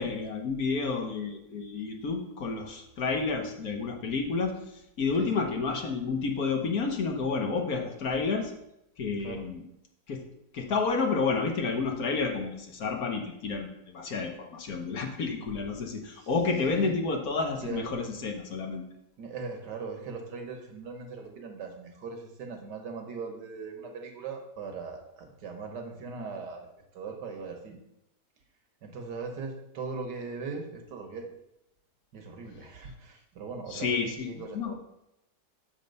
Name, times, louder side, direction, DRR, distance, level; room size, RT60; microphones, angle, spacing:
voice 1, 0.0-8.5 9.0-9.6 10.1-10.2 10.5-18.8 33.7-34.7, left 4 dB, 60° left, 2 dB, 1.4 m, -30 dB
voice 2, 5.2-5.5 9.2-9.5 16.1-16.3 16.7-17.0 17.6-18.0 19.2-27.8 28.8-31.3 32.1-34.7, right 4 dB, 75° right, 3 dB, 1.7 m, -39 dB
7.0 x 4.4 x 5.2 m, 0.84 s
omnidirectional pair, 1.8 m